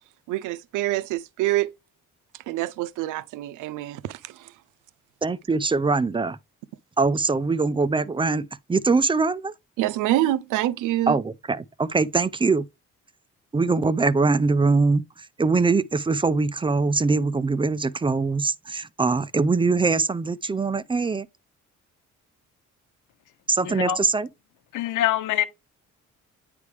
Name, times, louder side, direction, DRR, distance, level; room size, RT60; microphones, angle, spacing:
voice 1, 0.3-1.7 2.3-4.5 9.8-11.2, right 15 dB, 90° right, 0.5 m, -26 dB
voice 2, 5.2-6.4 7.0-9.5 11.1-12.6 13.5-15.0 15.4-21.3 23.5-24.3, right 4 dB, 15° right, 0.4 m, -22 dB
voice 3, 23.6-24.0 24.7-25.4, left 11 dB, 90° left, 0.9 m, -24 dB
9.3 x 3.4 x 3.3 m
cardioid pair, 90°, 30 cm